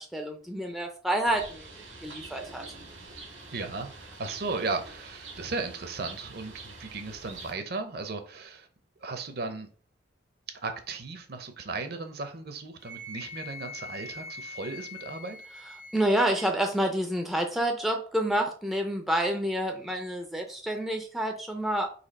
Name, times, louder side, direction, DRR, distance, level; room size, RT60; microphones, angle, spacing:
voice 1, 0.0-1.7 2.0-2.7 15.9-21.9, right 1 dB, ahead, 0.4 m, -28 dB
Bird, 1.2-7.5, right 3 dB, 85° right, 1.4 m, -46 dB
voice 2, 3.5-8.7 9.0-9.7 10.6-15.4, right 3 dB, 55° right, 0.6 m, -36 dB
Wind instrument woodwind instrument, 12.8-16.5, left 3 dB, 35° left, 0.7 m, -43 dB
4.2 x 2.8 x 4.1 m
head